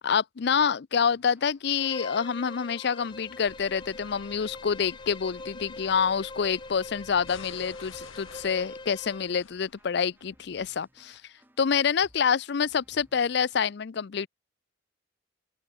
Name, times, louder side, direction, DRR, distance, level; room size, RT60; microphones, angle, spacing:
voice 1, 0.0-11.2 11.6-14.3, left 6 dB, 55° left, 0.5 m, -27 dB
sound 1, 1.0-13.7, right 1 dB, 10° right, 7.6 m, -64 dB
Bowed string instrument, 1.8-9.4, left 3 dB, 25° left, 1.1 m, -43 dB
sound 2, 3.4-10.3, left 4 dB, 90° left, 1.9 m, -51 dB
open air
head